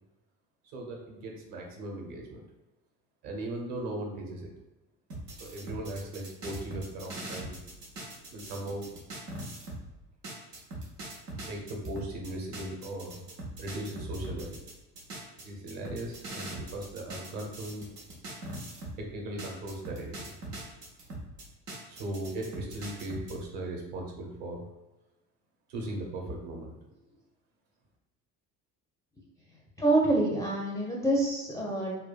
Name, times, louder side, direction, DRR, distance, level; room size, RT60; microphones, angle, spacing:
voice 1, 0.6-2.4 3.2-4.5 5.4-7.6 8.3-8.9 11.4-13.3 13.6-14.6 15.4-17.8 19.0-20.3 21.9-24.6 25.7-26.7, right 1 dB, 50° right, 1 dB, 0.8 m, -38 dB
sound 1, 5.1-9.9 10.2-19.0 19.4-23.4, right 1 dB, 85° right, 0.6 m, -42 dB
voice 2, 29.8-32.0, right 2 dB, 5° left, -4 dB, 0.4 m, -26 dB
3.5 x 2.2 x 2.3 m, 1.0 s
figure-of-eight pair, 55°, 47 cm